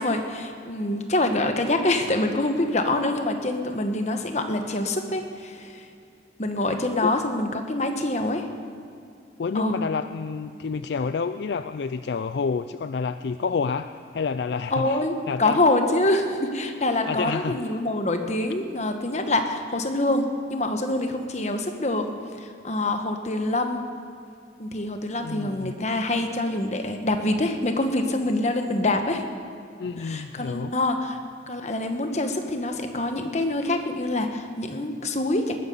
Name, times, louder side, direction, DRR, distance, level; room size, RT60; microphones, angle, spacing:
voice 1, 0.0-5.9 6.4-8.5 9.5-9.8 14.7-22.1 22.4-23.8 24.6-29.2 30.0-31.2 31.5-35.6, left 2 dB, 40° left, 6 dB, 1.2 m, -25 dB
voice 2, 9.4-15.0 15.3-15.6 17.1-17.8 25.2-25.8 29.8-30.7, left 5 dB, 65° left, 11 dB, 0.4 m, -29 dB
20.0 x 9.5 x 6.9 m, 2.5 s
head